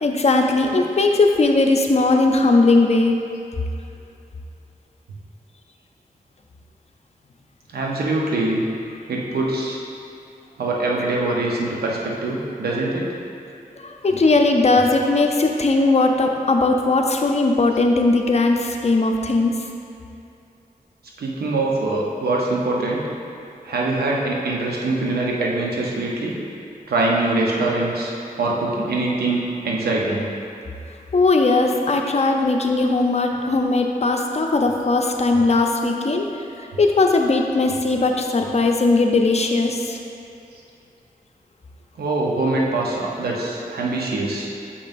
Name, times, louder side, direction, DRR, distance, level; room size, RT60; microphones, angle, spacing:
voice 1, 0.0-3.2 13.8-19.6 31.1-36.3 36.8-40.0, left 3 dB, 45° left, 3 dB, 0.6 m, -18 dB
voice 2, 7.7-8.6 9.1-9.8 10.6-13.2 21.2-23.0 23.6-26.4 26.9-28.1 28.4-30.3 42.0-44.5, right 2 dB, 90° right, -2 dB, 0.8 m, -23 dB
6.7 x 5.3 x 2.6 m, 2.6 s
cardioid pair, 45°, 16 cm